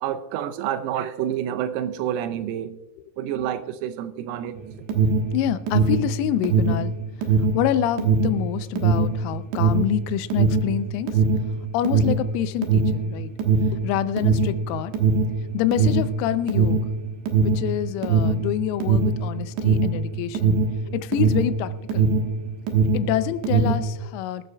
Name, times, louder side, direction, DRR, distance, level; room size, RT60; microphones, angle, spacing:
voice 1, 0.0-2.8 3.2-4.6, right 10 dB, 85° right, 10 dB, 3.5 m, -28 dB
Alarm, 4.6-22.4 22.6-23.9, right 4 dB, 70° right, 3.1 m, -21 dB
voice 2, 5.3-6.9 7.5-11.1 11.7-13.3 13.8-14.9 15.5-16.8 17.4-20.6 20.9-22.1 22.9-24.5, left 12 dB, 90° left, 13 dB, 3.4 m, -26 dB
24.0 x 12.0 x 2.3 m, 1.0 s
omnidirectional pair, 6.0 m